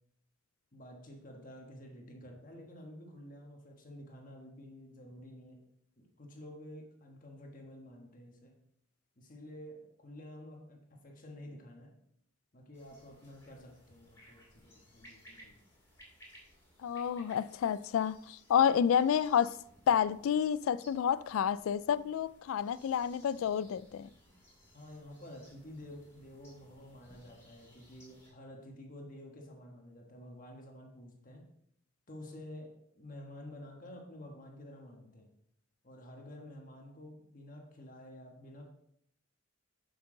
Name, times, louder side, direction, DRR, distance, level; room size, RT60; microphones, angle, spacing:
voice 1, 0.7-5.7 6.0-8.6 9.2-11.9 12.5-15.6 24.7-31.5 32.1-35.3 35.8-38.7, left 1 dB, 40° left, 1.3 m, -50 dB
sound 1, 12.7-28.3, equal, 15° left, 2.6 m, -61 dB
voice 2, 16.8-19.6 19.9-24.1, left 8 dB, 85° left, 0.3 m, -29 dB
7.6 x 7.0 x 3.8 m
head